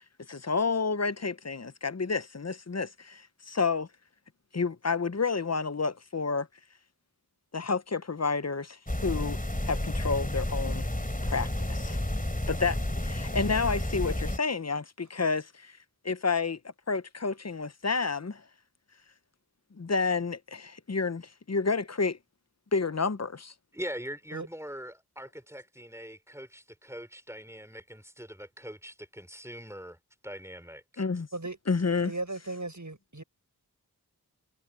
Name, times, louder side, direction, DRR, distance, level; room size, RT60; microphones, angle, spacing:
voice 1, 0.3-3.9 4.5-6.5 7.5-9.4 9.7-10.9 11.2-12.0 12.5-12.8 13.0-15.8 16.0-16.6 16.9-18.4 19.7-22.2 22.7-23.5 31.0-31.3 31.7-32.1, left 4 dB, 40° left, 0.8 m, -30 dB
sound 1, 8.9-14.4, left 1 dB, 20° left, 3.4 m, -31 dB
voice 2, 23.7-30.0 30.2-31.0, equal, 5° right, 5.2 m, -42 dB
voice 3, 32.0-33.2, right 2 dB, 50° right, 7.5 m, -36 dB
wide cardioid pair, 45°, 39 cm